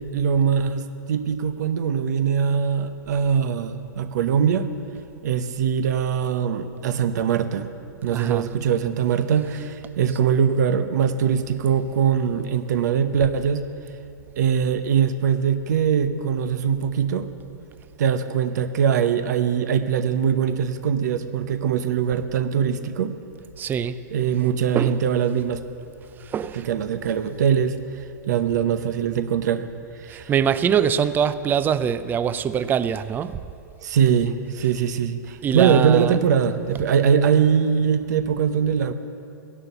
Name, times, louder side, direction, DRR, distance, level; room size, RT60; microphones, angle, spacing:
voice 1, 0.0-4.7 5.2-7.7 8.0-13.7 14.4-17.3 18.0-23.1 24.1-25.6 26.5-27.8 28.3-29.7 30.0-30.3 33.8-38.9, right 7 dB, 60° right, 1.0 m, -22 dB
voice 2, 8.1-8.5 23.6-24.0 24.7-25.0 26.2-26.7 30.1-33.4 35.4-36.2, right 8 dB, 20° right, 0.5 m, -23 dB
16.0 x 11.5 x 6.9 m
hypercardioid pair, 115°, 10 cm